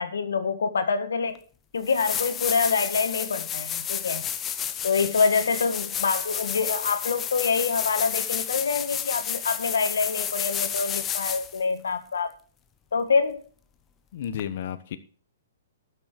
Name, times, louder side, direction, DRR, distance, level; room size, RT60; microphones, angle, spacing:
voice 1, 0.0-1.4 1.7-4.2 4.8-12.3 12.9-13.4, left 5 dB, 80° left, 10 dB, 1.7 m, -26 dB
sound 1, 1.3-1.4 1.8-11.6 14.4-14.5, left 9 dB, 20° left, 0.9 m, -31 dB
voice 2, 14.1-15.0, left 9 dB, 55° left, 11 dB, 1.0 m, -32 dB
12.5 x 6.8 x 6.6 m, 0.41 s
hypercardioid pair, 130°, 0 cm